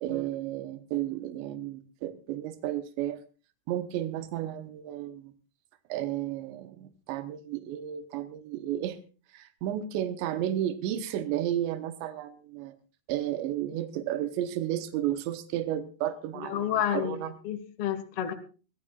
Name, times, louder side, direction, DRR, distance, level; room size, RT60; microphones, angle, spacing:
voice 1, 0.0-3.2 3.7-5.3 5.9-9.0 9.3-12.7 13.1-17.3, right 12 dB, 85° right, 9 dB, 3.2 m, -32 dB
voice 2, 16.3-17.2 17.4-18.3, left 10 dB, 60° left, 7 dB, 1.5 m, -30 dB
24.0 x 14.5 x 2.4 m, 0.35 s
omnidirectional pair, 5.0 m